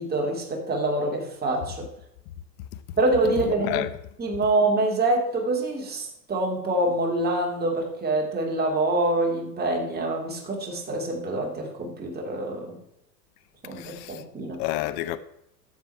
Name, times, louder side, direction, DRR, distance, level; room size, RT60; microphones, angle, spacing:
voice 1, 0.0-1.9 3.0-3.9 4.2-12.8 13.6-14.6, right 2 dB, 20° right, 2.5 m, -26 dB
voice 2, 3.4-3.9 13.7-14.2 14.6-15.2, left 15 dB, 50° left, 1.0 m, -29 dB
12.5 x 7.3 x 4.6 m
hypercardioid pair, 100°, 49 cm